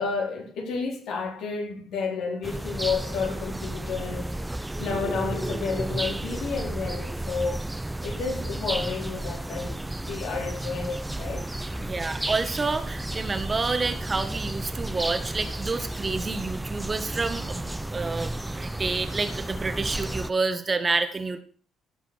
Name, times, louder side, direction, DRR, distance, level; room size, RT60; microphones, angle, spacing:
voice 1, 0.0-4.4 4.8-7.6 8.0-11.9, left 4 dB, 75° left, 4.2 m, -31 dB
Summer Backyard Ambience, 2.4-20.3, right 1 dB, 10° right, 0.6 m, -32 dB
voice 2, 11.8-18.3 18.6-21.4, right 3 dB, 30° right, 1.8 m, -29 dB
16.5 x 5.6 x 6.6 m
cardioid pair, 85°, 0 cm